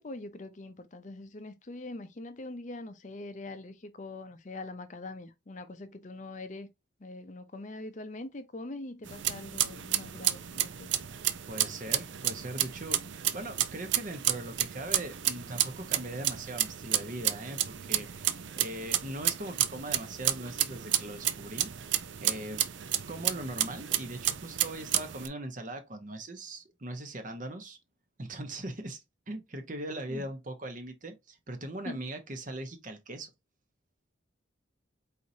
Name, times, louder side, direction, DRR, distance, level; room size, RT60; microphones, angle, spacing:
voice 1, 0.0-6.7 7.0-10.9 30.1-30.3 31.8-32.1, left 2 dB, 40° left, 0.6 m, -43 dB
sound 1, 9.1-25.3, right 12 dB, 65° right, 0.5 m, -31 dB
voice 2, 11.5-13.0 13.3-18.3 18.6-21.7 22.2-22.6 23.1-27.8 28.2-33.3, right 1 dB, 40° right, 0.9 m, -40 dB
4.7 x 4.1 x 2.7 m
head